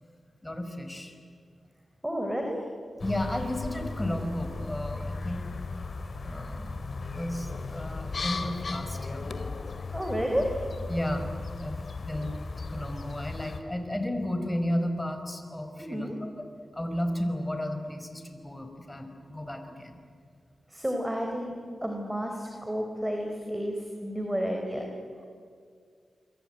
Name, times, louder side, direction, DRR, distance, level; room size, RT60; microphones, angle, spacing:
voice 1, 0.4-1.2 3.0-5.4 6.2-9.3 9.7-10.0 10.9-16.3 16.7-20.0, left 1 dB, 15° left, 6 dB, 4.9 m, -33 dB
voice 2, 2.0-2.6 9.9-10.6 15.8-16.1 20.7-24.9, equal, 10° right, 2 dB, 4.0 m, -31 dB
sound 1, 3.0-13.6, left 3 dB, 60° left, 2.3 m, -36 dB
27.5 x 23.5 x 9.2 m, 2.2 s
cardioid pair, 60°, 0 cm